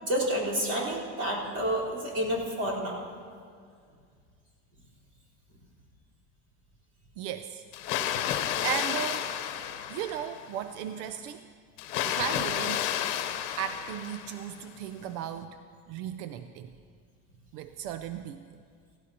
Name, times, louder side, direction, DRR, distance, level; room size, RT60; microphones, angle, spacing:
voice 1, 0.0-3.0, right 1 dB, 45° right, -6 dB, 4.1 m, -29 dB
voice 2, 7.2-7.6 8.2-9.3 9.9-11.4 12.1-13.2 13.6-15.6 15.9-16.7 17.5-18.4, right 9 dB, 90° right, 9 dB, 0.6 m, -36 dB
Water, 7.7-10.5 11.8-14.6, left 10 dB, 75° left, 0.9 m, -31 dB
16.5 x 16.5 x 2.9 m, 2.1 s
cardioid pair, 155°, 34 cm